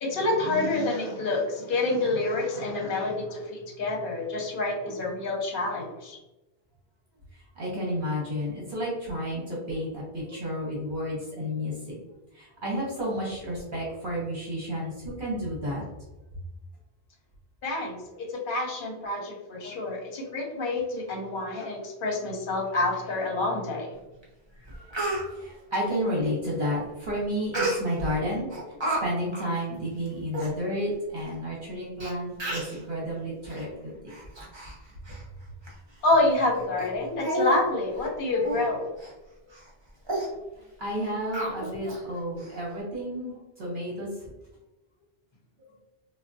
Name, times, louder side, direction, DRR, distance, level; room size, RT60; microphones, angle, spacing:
voice 1, 0.0-6.2 17.6-24.0 36.0-38.9, left 2 dB, 60° left, 1 dB, 0.8 m, -28 dB
voice 2, 7.3-12.0 12.3-15.8 24.6-28.5 28.9-33.9 40.8-44.1, equal, 55° right, -4 dB, 0.9 m, -31 dB
Speech, 24.2-24.3 24.7-25.2 27.5-28.1 28.5-29.0 29.3-29.5 30.1-30.2 30.3-30.5 31.3-31.4 32.0-32.1 32.4-32.8 33.4-33.6 34.1-34.8 35.1-35.2 35.7-35.8 36.3-36.4 36.8-36.9 37.2-37.6 37.9-38.1 38.4-38.6 39.0-39.1 39.5-39.7 40.1-40.3 41.3-42.0 42.4-42.5, right 1 dB, 30° right, 0.6 m, -31 dB
3.4 x 2.1 x 2.5 m, 1.0 s
omnidirectional pair, 1.1 m